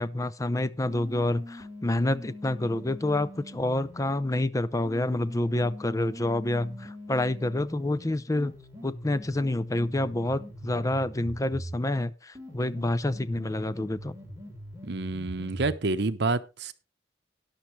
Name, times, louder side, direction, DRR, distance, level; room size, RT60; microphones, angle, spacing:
voice 1, 0.0-8.5 8.8-14.1, left 1 dB, 20° left, 0.5 m, -28 dB
sound 1, 0.9-4.1 4.9-11.8 12.4-15.8, left 1 dB, 15° right, 3.4 m, -43 dB
voice 2, 14.8-16.7, right 3 dB, 65° right, 0.9 m, -28 dB
13.5 x 10.5 x 3.2 m
head